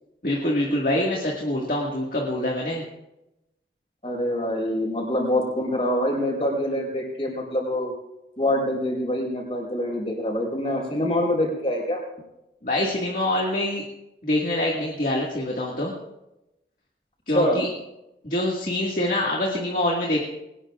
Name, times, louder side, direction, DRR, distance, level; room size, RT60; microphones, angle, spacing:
voice 1, 0.2-2.8 12.6-13.8 14.2-15.9 17.3-17.7 18.2-20.2, left 1 dB, 50° left, -3 dB, 2.0 m, -25 dB
voice 2, 4.0-7.9 8.4-12.0 17.3-17.6, left 1 dB, 35° left, -1 dB, 5.0 m, -25 dB
22.0 x 19.0 x 2.5 m, 0.92 s
head